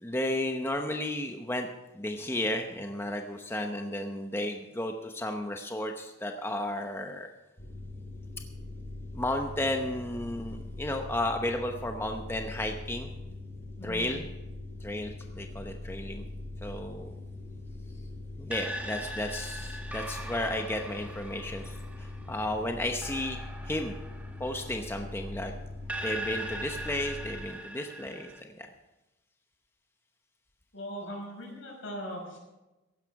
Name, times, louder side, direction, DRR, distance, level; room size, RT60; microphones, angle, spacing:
voice 1, 0.0-1.7 1.9-7.3 9.1-13.1 13.8-14.2 14.8-16.3 16.6-17.2 18.4-23.4 23.6-24.0 24.4-25.5 26.0-28.7, left 1 dB, 10° left, 4 dB, 0.8 m, -33 dB
sound 1, 7.6-27.5, left 2 dB, 40° left, 2.6 m, -42 dB
voice 2, 13.8-14.1 30.7-32.4, equal, 85° left, -1 dB, 5.8 m, -39 dB
sound 2, 18.5-25.4 25.9-28.4, right 1 dB, 5° right, 1.1 m, -41 dB
15.5 x 11.5 x 4.8 m, 1.0 s
head